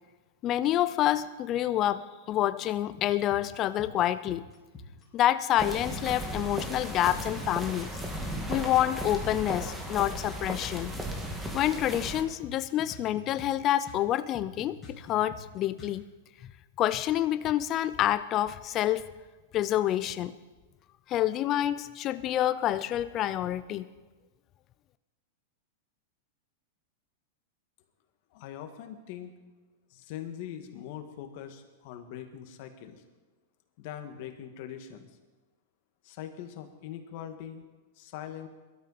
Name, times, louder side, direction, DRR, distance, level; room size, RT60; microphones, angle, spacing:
voice 1, 0.4-4.5 5.1-8.0 8.5-10.9 11.5-16.0 16.8-19.0 19.5-20.3 21.1-23.9, left 12 dB, 30° left, 12 dB, 0.5 m, -28 dB
sound 1, 3.1-5.0 5.7-6.3 6.7-9.8 10.7-15.9, left 3 dB, 15° left, 4.9 m, -46 dB
sound 2, 5.6-12.2, right 1 dB, 5° right, 1.7 m, -36 dB
voice 2, 28.3-29.3 29.9-33.0 33.8-35.1 36.0-37.6 38.0-38.5, left 10 dB, 50° left, 6 dB, 1.7 m, -42 dB
22.0 x 12.5 x 4.2 m, 1.2 s
supercardioid pair, 155°, 0 cm